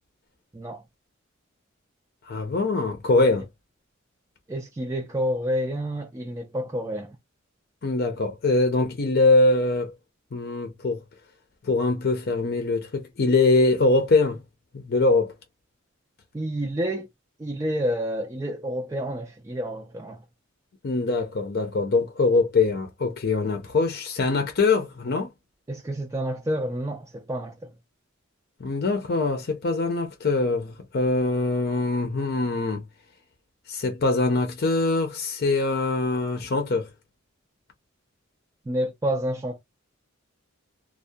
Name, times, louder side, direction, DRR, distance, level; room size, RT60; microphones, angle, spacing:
voice 1, 2.3-3.5 7.8-9.9 10.3-11.0 11.6-14.4 14.7-15.3 20.8-25.3 28.6-32.8 33.7-36.9, left 3 dB, 50° left, 0.6 m, -23 dB
voice 2, 4.5-7.2 16.3-17.1 17.4-20.2 25.7-27.7 38.7-39.6, equal, 15° right, 0.3 m, -29 dB
2.3 x 2.1 x 2.6 m
head